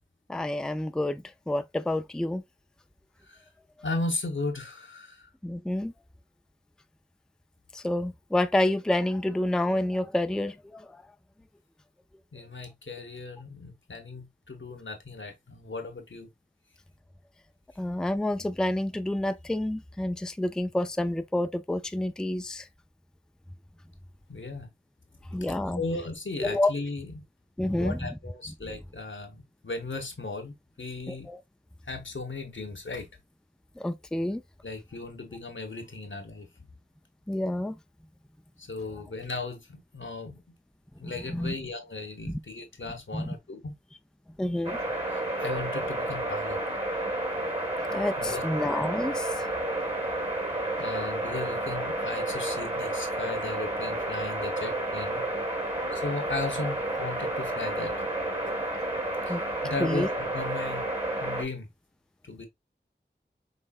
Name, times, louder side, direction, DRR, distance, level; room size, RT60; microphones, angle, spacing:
voice 1, 0.3-2.4 5.4-5.9 7.7-10.9 17.8-22.7 25.3-25.8 26.4-26.7 27.6-28.0 31.1-31.4 33.8-34.4 37.3-37.8 41.0-41.5 42.2-42.4 43.1-43.3 44.4-44.8 47.9-49.3 59.3-59.4 59.8-60.1, left 1 dB, 5° left, 0.4 m, -28 dB
voice 2, 3.8-5.3 12.3-16.3 24.3-24.7 25.7-27.2 27.8-31.3 31.9-33.1 34.6-36.5 38.6-40.5 41.0-43.8 45.1-46.6 48.2-48.4 50.8-55.2 55.9-57.9 59.3-60.9 61.2-61.7 62.2-62.5, left 3 dB, 90° left, 1.1 m, -36 dB
sound 1, 44.6-61.4, right 1 dB, 30° right, 1.6 m, -31 dB
5.4 x 3.3 x 2.4 m
wide cardioid pair, 40°, 19 cm